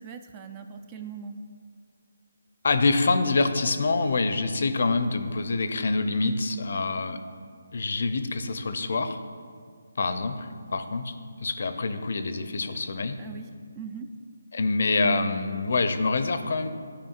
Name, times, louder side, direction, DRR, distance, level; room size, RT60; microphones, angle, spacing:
voice 1, 0.0-1.4 13.2-13.5 13.8-14.1, right 6 dB, 20° right, 7 dB, 0.4 m, -40 dB
voice 2, 2.6-7.2 7.7-9.2 10.0-11.1 11.4-13.2 14.5-16.7, left 3 dB, 55° left, 9 dB, 0.5 m, -26 dB
13.5 x 5.0 x 2.4 m, 2.1 s
figure-of-eight pair, 150°, 0 cm